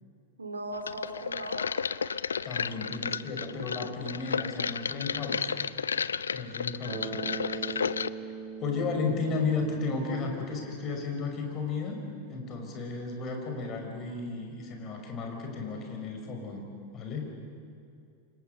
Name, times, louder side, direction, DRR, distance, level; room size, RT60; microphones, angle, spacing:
voice 1, 0.4-1.7, right 1 dB, 75° right, 6 dB, 2.8 m, -38 dB
sound 1, 0.9-8.1, left 6 dB, 70° left, 0.5 m, -32 dB
voice 2, 2.4-5.5 6.3-8.0 8.6-12.0 12.3-16.6 16.9-17.3, left 4 dB, 30° left, 2 dB, 5.6 m, -34 dB
Bass guitar, 6.9-10.9, right 5 dB, 55° right, 4.0 m, -40 dB
28.5 x 25.5 x 6.8 m, 2.5 s
figure-of-eight pair, 90°, 0 cm